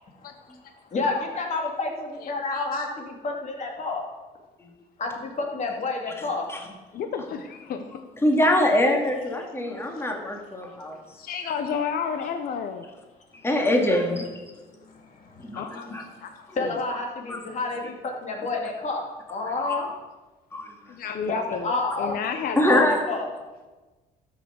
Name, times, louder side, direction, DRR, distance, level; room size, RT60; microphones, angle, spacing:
voice 1, 0.9-4.0 5.0-6.5 8.6-8.7 14.9-15.5 15.9-16.0 16.5-19.0 19.3-19.9 21.3-22.2 22.5-22.8 23.1-23.3, left 3 dB, 45° left, 1 dB, 2.9 m, -29 dB
voice 2, 2.2-2.9 6.9-8.0 9.9-10.0 11.2-12.9 15.5-16.8 19.7-19.8 20.9-22.9, left 6 dB, 60° left, 6 dB, 1.0 m, -32 dB
voice 3, 8.2-11.0 13.4-14.3 15.4-16.0 17.3-17.4 19.6-19.7 20.5-20.7 22.6-23.0, left 1 dB, 15° left, 1 dB, 2.2 m, -23 dB
13.0 x 6.8 x 7.6 m, 1.2 s
cardioid pair, 110°, 17 cm